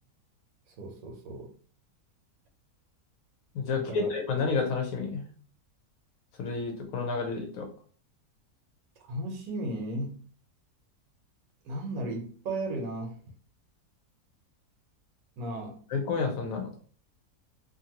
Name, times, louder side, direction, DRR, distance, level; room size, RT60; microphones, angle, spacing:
voice 1, 0.7-1.5 3.9-4.1 9.0-10.2 11.6-13.2 15.4-15.8, right 1 dB, 70° right, 1.1 m, -35 dB
voice 2, 3.5-5.2 6.4-7.7 15.9-16.7, left 4 dB, 70° left, 0.9 m, -30 dB
2.6 x 2.5 x 2.8 m
omnidirectional pair, 1.7 m